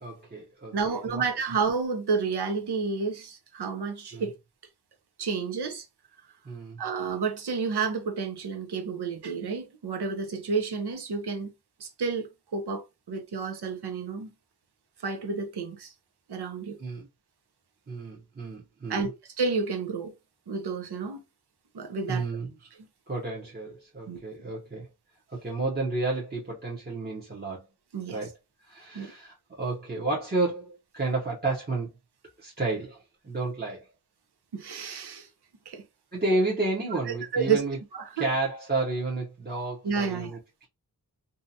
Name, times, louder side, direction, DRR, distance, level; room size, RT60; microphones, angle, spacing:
voice 1, 0.0-1.2 4.1-4.2 6.4-6.8 16.8-17.1 17.9-19.1 22.1-22.5 23.1-24.9 25.3-27.6 28.1-28.3 28.6-31.9 32.4-33.9 36.1-37.8 38.2-40.7, right 2 dB, 25° right, 0.8 m, -31 dB
voice 2, 0.7-4.4 5.2-5.9 6.8-11.5 11.8-14.3 15.0-15.9 16.3-16.8 18.9-19.1 19.4-20.1 20.5-21.2 21.7-22.3 24.1-24.2 27.9-28.2 28.9-29.1 34.5-35.3 35.7-35.8 37.1-37.6 37.9-38.3 39.8-40.3, right 5 dB, 90° right, 0.7 m, -30 dB
2.7 x 2.2 x 2.6 m
wide cardioid pair, 70°, 39 cm